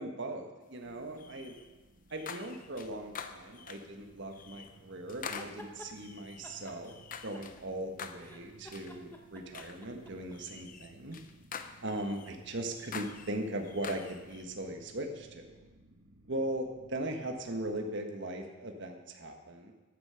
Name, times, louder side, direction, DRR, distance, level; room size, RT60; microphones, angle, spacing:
voice 1, 0.0-1.6 2.1-6.9 7.2-11.2 11.8-15.6 16.3-19.7, right 1 dB, 55° right, 4 dB, 1.5 m, -39 dB
sound 1, 0.8-17.8, right 2 dB, 80° right, 1.7 m, -60 dB
sound 2, 1.2-1.7 2.1-4.0 4.3-4.7 5.1-7.6 8.0-8.4 8.7-9.0 9.5-9.8 10.3-12.4 12.8-14.4, left 6 dB, 40° left, 0.7 m, -46 dB
sound 3, 5.2-5.9 6.4-7.8 8.2-10.4, left 1 dB, 10° left, 1.0 m, -51 dB
14.5 x 8.5 x 5.8 m, 1.2 s
head